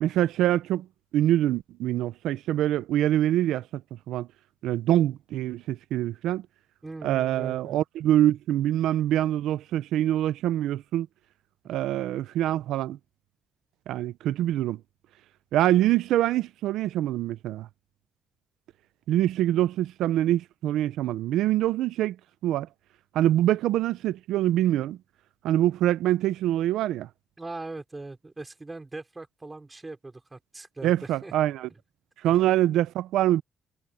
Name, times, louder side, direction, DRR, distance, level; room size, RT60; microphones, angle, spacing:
voice 1, 0.0-0.9 1.1-3.8 4.1-4.3 4.6-6.5 7.0-11.1 11.7-13.0 13.9-14.8 15.5-17.7 19.1-22.2 22.4-22.7 23.1-25.0 25.4-27.1 30.8-31.7 32.2-33.4, right 13 dB, 85° right, 0.7 m, -24 dB
voice 2, 6.8-7.8 27.4-31.3 31.7-31.8 32.2-32.4, right 2 dB, 20° right, 5.0 m, -40 dB
cardioid pair, 90°, 0 cm